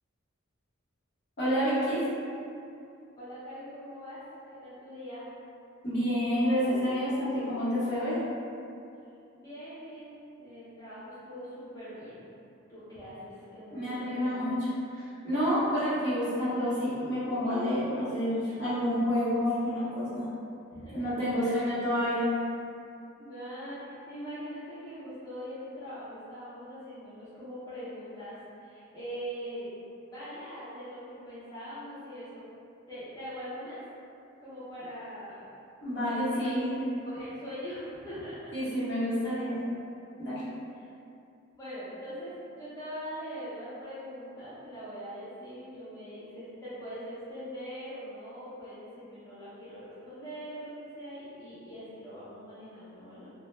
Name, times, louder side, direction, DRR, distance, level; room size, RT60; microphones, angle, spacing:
voice 1, 1.4-2.0 5.8-8.2 13.7-14.6 14.9-20.3 20.9-22.3 35.8-36.7 38.5-39.6 40.2-40.4, equal, 55° left, -11 dB, 0.9 m, -29 dB
voice 2, 3.1-4.2 4.5-5.2 9.4-12.2 12.7-14.3 20.7-21.0 21.4-21.6 23.2-29.7 30.1-32.4 32.9-33.8 34.4-35.4 36.3-36.7 37.1-38.5 40.7-40.9 41.5-53.3, equal, 15° left, -14 dB, 0.5 m, -42 dB
2.1 x 2.0 x 3.1 m, 2.6 s
head